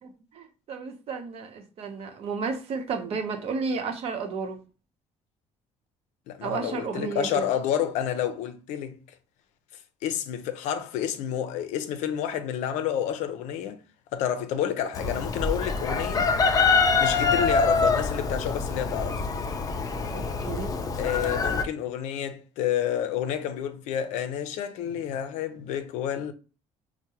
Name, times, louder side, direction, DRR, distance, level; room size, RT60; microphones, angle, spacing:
voice 1, 0.0-4.6 6.4-7.5 20.1-20.8, right 5 dB, 55° right, 0.8 m, -32 dB
voice 2, 6.3-9.0 10.0-13.8 14.1-16.3 17.0-19.2 21.0-26.3, left 10 dB, 85° left, 0.5 m, -29 dB
Chicken rooster, 14.9-21.6, left 4 dB, 30° left, 0.4 m, -25 dB
4.6 x 2.1 x 2.8 m
cardioid pair, 115°, 12 cm